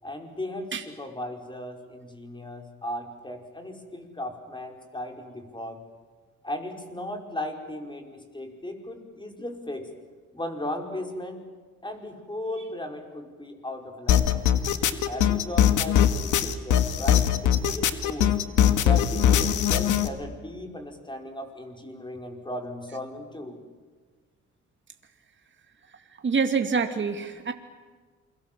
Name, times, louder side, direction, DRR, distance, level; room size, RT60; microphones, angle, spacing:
voice 1, 0.0-5.8 6.4-9.9 10.3-11.4 11.8-14.5 15.1-18.4 18.8-23.6, left 1 dB, 15° left, 3 dB, 5.1 m, -36 dB
sound 1, 14.1-20.1, left 9 dB, 80° left, 1.8 m, -21 dB
voice 2, 26.2-27.5, right 5 dB, 40° right, 5 dB, 2.3 m, -26 dB
28.0 x 23.5 x 7.5 m, 1.5 s
cardioid pair, 90°, 30 cm